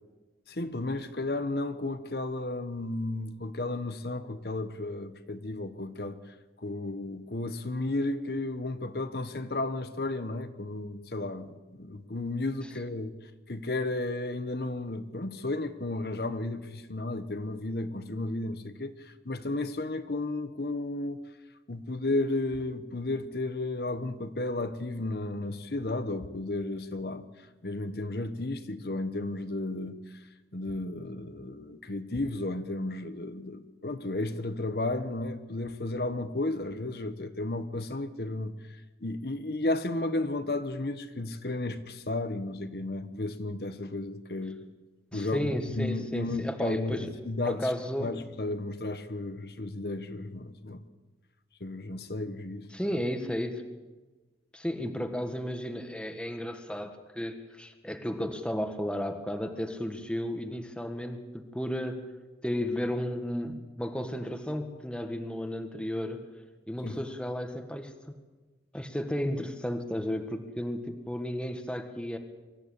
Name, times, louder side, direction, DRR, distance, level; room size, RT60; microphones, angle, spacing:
voice 1, 0.5-21.2 21.7-44.7 45.1-47.7 48.0-50.9 51.6-52.7 66.8-67.0, left 2 dB, 60° left, 10 dB, 1.1 m, -33 dB
voice 2, 45.1-47.1 47.4-48.1 52.7-53.6 54.5-62.1 62.4-66.2 66.7-67.9 68.7-72.2, equal, 5° left, 6 dB, 1.5 m, -33 dB
24.0 x 13.5 x 8.6 m, 1.2 s
head